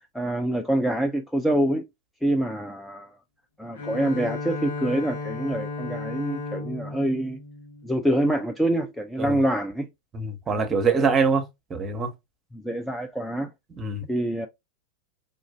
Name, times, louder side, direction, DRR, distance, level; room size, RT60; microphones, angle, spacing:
voice 1, 0.1-1.8 2.2-3.1 3.6-7.4 7.8-9.9 10.5-11.0 12.5-13.5 14.1-14.5, right 1 dB, 5° left, 0.4 m, -26 dB
Bowed string instrument, 3.7-8.5, left 3 dB, 60° left, 1.2 m, -35 dB
voice 2, 10.1-11.4 11.7-12.1 13.8-14.1, right 4 dB, 25° right, 1.0 m, -24 dB
4.0 x 2.5 x 2.2 m
figure-of-eight pair, 90°, 0 cm